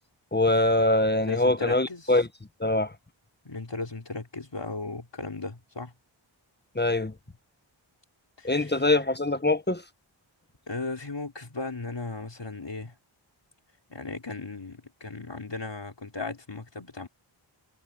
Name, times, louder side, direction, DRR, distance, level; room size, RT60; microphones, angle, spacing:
voice 1, 0.3-2.3 2.6-2.9 6.7-7.1 8.4-9.8, left 2 dB, 20° left, 1.2 m, -23 dB
voice 2, 1.3-2.2 3.4-5.9 8.4-8.8 10.7-12.9 13.9-17.1, left 3 dB, 60° left, 4.6 m, -36 dB
wide cardioid pair, 45°, 49 cm